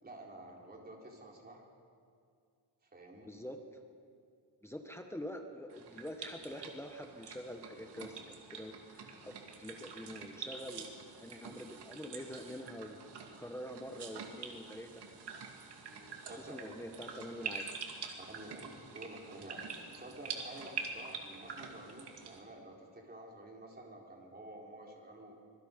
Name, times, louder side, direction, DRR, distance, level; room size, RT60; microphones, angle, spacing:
voice 1, 0.0-1.7 2.8-3.3 16.3-16.6 18.2-25.4, right 1 dB, 20° right, -1 dB, 4.0 m, -50 dB
voice 2, 3.3-3.6 4.6-13.0 13.4-15.0 15.9-18.0, equal, 5° left, 4 dB, 1.2 m, -46 dB
sound 1, 5.7-22.4, right 5 dB, 70° right, 2.6 m, -46 dB
25.5 x 22.5 x 5.2 m, 2.3 s
cardioid pair, 145°, 42 cm